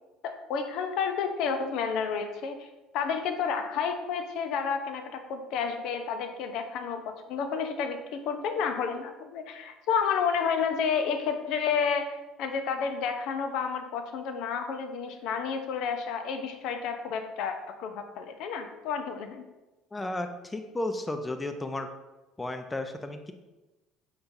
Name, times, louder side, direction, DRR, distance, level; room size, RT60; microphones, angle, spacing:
voice 1, 0.2-2.7 2.9-19.4, left 6 dB, 60° left, 6 dB, 0.7 m, -30 dB
voice 2, 19.9-21.9 22.4-23.3, left 2 dB, 15° left, 7 dB, 0.7 m, -33 dB
6.9 x 5.7 x 2.7 m, 1.1 s
hypercardioid pair, 60°, 0 cm